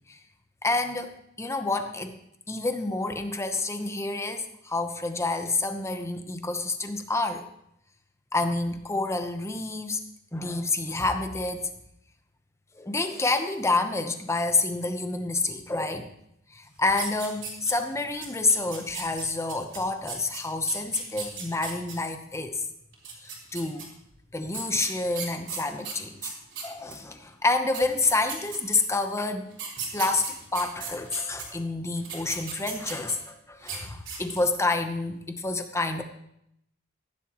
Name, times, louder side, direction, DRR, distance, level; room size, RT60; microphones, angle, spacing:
voice 1, 0.6-2.2 2.5-7.4 8.3-10.0 10.3-11.7 12.7-16.1 16.5-22.6 23.2-23.9 24.3-26.3 26.6-29.5 29.9-36.0, left 3 dB, 15° left, 7 dB, 0.9 m, -28 dB
sound 1, 16.9-17.9 18.2-21.9 22.9-23.8 24.5-27.0 27.5-27.6 27.7-28.9 29.5-31.4 32.0-33.3 33.6-33.8 34.1-34.5, right 6 dB, 65° right, 4.1 m, -37 dB
15.0 x 11.5 x 3.0 m, 0.76 s
head